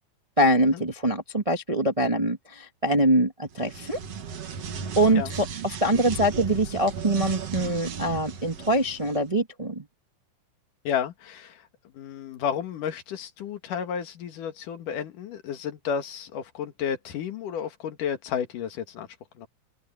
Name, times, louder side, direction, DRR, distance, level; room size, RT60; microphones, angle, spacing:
voice 1, 0.4-4.0 4.9-9.8, right 1 dB, 15° right, 1.1 m, -24 dB
sound 1, 3.5-9.2, right 6 dB, 55° right, 2.7 m, -36 dB
voice 2, 10.8-11.7 11.9-19.1 19.4-19.5, left 8 dB, 80° left, 3.4 m, -32 dB
omnidirectional pair, 3.7 m